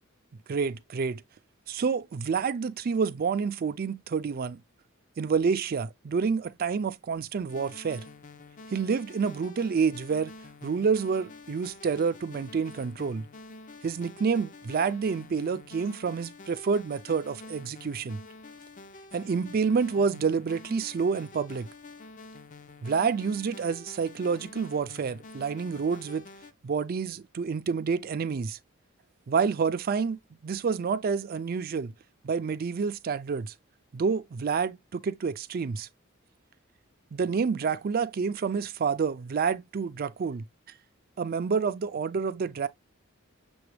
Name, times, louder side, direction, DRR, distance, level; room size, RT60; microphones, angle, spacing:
voice 1, 0.5-1.2 1.7-4.6 5.2-8.1 8.7-10.3 10.6-13.2 13.8-18.2 19.1-21.7 22.8-26.3 26.6-28.6 29.3-30.2 30.4-31.9 32.2-33.5 33.9-35.9 37.1-40.4 41.2-42.7, right 5 dB, 45° right, 0.4 m, -28 dB
sound 1, 7.5-26.5, left 3 dB, 40° left, 0.5 m, -48 dB
6.9 x 2.3 x 3.2 m
head